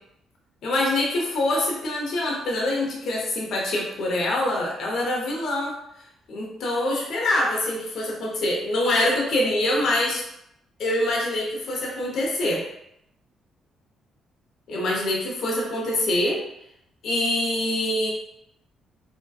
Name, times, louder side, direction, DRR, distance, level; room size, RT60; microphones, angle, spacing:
voice 1, 0.6-5.8 6.3-10.2 10.8-12.6 14.7-16.4 17.0-18.1, left 1 dB, 70° left, -2 dB, 0.6 m, -25 dB
2.6 x 2.2 x 2.2 m, 0.79 s
cardioid pair, 90°, 0 cm